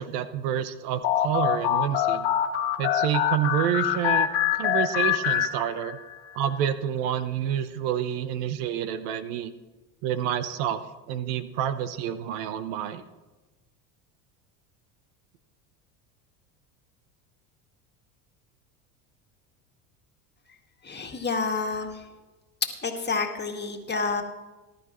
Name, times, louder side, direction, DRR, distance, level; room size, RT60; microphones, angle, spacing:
voice 1, 0.0-2.3 2.8-4.3 4.6-6.0 6.3-9.5 10.0-13.0, right 10 dB, 75° right, 12 dB, 1.0 m, -28 dB
sound 1, 1.0-6.1, left 10 dB, 70° left, 1.6 m, -25 dB
voice 2, 20.8-22.1 22.8-24.2, left 4 dB, 20° left, 3 dB, 2.0 m, -29 dB
19.5 x 12.0 x 3.1 m, 1.1 s
supercardioid pair, 90°, 47 cm